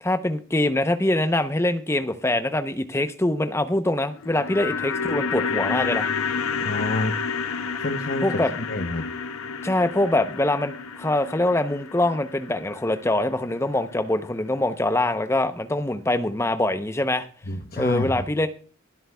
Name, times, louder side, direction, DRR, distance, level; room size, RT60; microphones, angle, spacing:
voice 1, 0.0-6.1 8.2-8.6 9.6-17.3 17.8-18.5, left 1 dB, 15° left, 9 dB, 0.7 m, -24 dB
sound 1, 4.1-14.3 14.6-14.7, left 5 dB, 90° left, 0.8 m, -30 dB
voice 2, 6.6-7.1 7.8-8.4 8.7-9.0 17.5-18.2, left 2 dB, 45° left, 6 dB, 0.9 m, -28 dB
23.0 x 7.9 x 2.3 m, 0.42 s
head